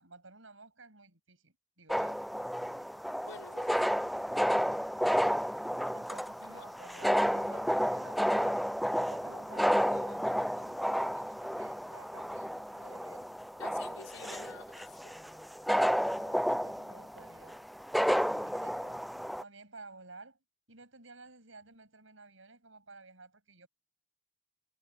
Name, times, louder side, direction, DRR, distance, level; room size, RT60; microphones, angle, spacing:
voice 1, 0.0-2.2 5.9-7.2 7.5-8.7 9.1-13.3 16.0-17.6 18.2-19.0 19.4-20.4 20.7-23.7, right 3 dB, 75° right, 7.9 m, -54 dB
sound 1, 1.9-19.4, equal, ahead, 0.4 m, -31 dB
voice 2, 3.2-4.2 6.4-6.6 7.1-7.6 13.6-15.2, left 4 dB, 85° left, 5.1 m, -51 dB
head